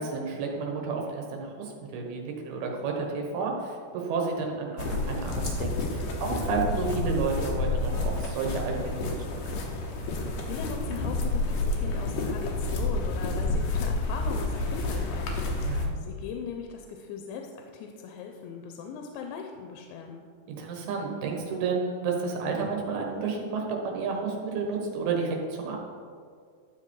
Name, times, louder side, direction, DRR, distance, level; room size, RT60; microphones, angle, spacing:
voice 1, 0.0-9.4 13.6-13.7 15.7-15.9 20.5-25.8, right 4 dB, 70° right, 1 dB, 3.1 m, -31 dB
sound 1, 4.8-15.9, left 2 dB, 65° left, 2.3 m, -29 dB
voice 2, 10.5-15.7 16.0-20.2, left 6 dB, 90° left, 3 dB, 3.0 m, -39 dB
12.5 x 6.8 x 4.7 m, 2.1 s
omnidirectional pair, 4.9 m